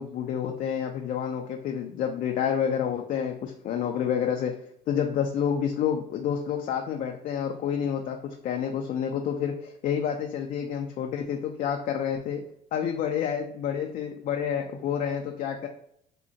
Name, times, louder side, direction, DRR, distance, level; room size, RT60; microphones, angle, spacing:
voice 1, 0.0-4.5 4.9-12.4 12.7-15.7, left 8 dB, 50° left, 3 dB, 0.4 m, -29 dB
3.6 x 2.1 x 2.7 m, 0.68 s
supercardioid pair, 95°, 18 cm